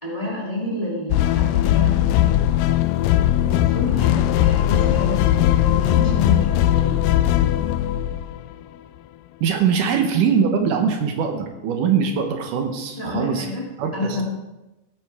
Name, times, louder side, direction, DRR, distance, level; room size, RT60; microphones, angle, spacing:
voice 1, 0.0-2.7 3.4-7.0 9.9-10.4 13.0-14.2, left 1 dB, 10° left, -4 dB, 2.5 m, -30 dB
sound 1, 1.1-8.5, left 12 dB, 85° left, 2.2 m, -19 dB
voice 2, 9.4-13.5 13.8-14.2, right 6 dB, 75° right, 5 dB, 2.6 m, -22 dB
17.5 x 8.9 x 3.5 m, 0.98 s
omnidirectional pair, 3.8 m